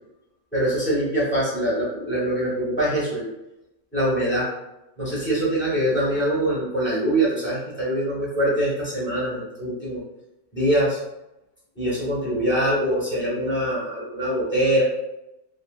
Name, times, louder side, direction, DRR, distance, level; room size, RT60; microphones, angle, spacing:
voice 1, 0.5-3.3 3.9-4.5 5.0-10.0 10.5-11.0 11.8-14.8, right 1 dB, 10° left, -7 dB, 1.1 m, -23 dB
2.8 x 2.7 x 2.4 m, 0.93 s
omnidirectional pair, 1.4 m